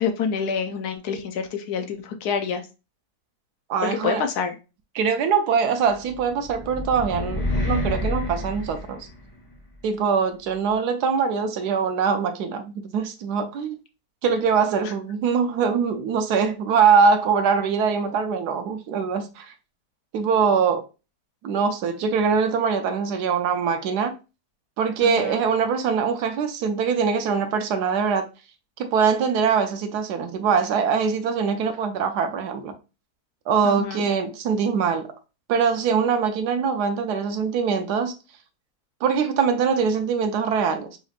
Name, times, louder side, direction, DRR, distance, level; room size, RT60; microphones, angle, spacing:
voice 1, 0.0-2.6 3.8-4.6 25.0-25.4 33.6-34.1, left 6 dB, 70° left, 1.1 m, -27 dB
voice 2, 3.7-4.2 4.9-9.1 9.8-13.8 14.2-19.5 20.1-20.9 21.4-24.1 24.8-28.3 28.8-32.7 33.5-35.1 35.5-38.1 39.0-41.0, right 6 dB, 75° right, 1.1 m, -23 dB
sound 1, 6.1-9.5, left 1 dB, 20° left, 0.6 m, -28 dB
4.2 x 2.9 x 2.4 m
omnidirectional pair, 1.8 m